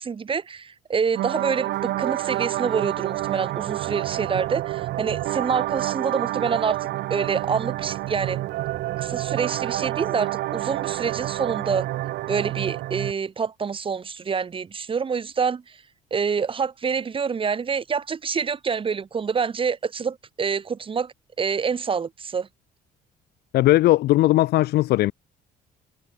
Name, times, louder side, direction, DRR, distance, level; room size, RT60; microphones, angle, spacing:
voice 1, 0.0-8.4 9.0-11.9 12.3-15.6 16.1-22.5, right 6 dB, 30° right, 2.0 m, -27 dB
sound 1, 1.1-13.1, right 16 dB, 75° right, 1.5 m, -28 dB
voice 2, 23.5-25.1, left 16 dB, 70° left, 0.7 m, -18 dB
cardioid pair, 110°, 17 cm